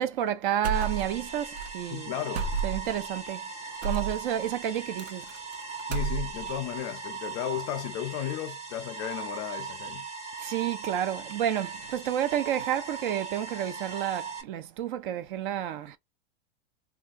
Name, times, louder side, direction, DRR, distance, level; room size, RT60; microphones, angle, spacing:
voice 1, 0.0-2.1 2.6-3.5 3.8-5.3 10.4-16.0, right 10 dB, 50° right, 0.5 m, -30 dB
sound 1, 0.6-1.3 1.6-1.7 2.3-3.0 3.8-4.2 5.0-5.5 5.8-6.5, right 5 dB, 90° right, 0.8 m, -31 dB
sound 2, 0.7-14.4, right 5 dB, 20° right, 0.9 m, -39 dB
voice 2, 1.9-2.6 5.9-10.0, left 12 dB, 40° left, 0.5 m, -34 dB
3.4 x 2.4 x 2.5 m
supercardioid pair, 160°, 32 cm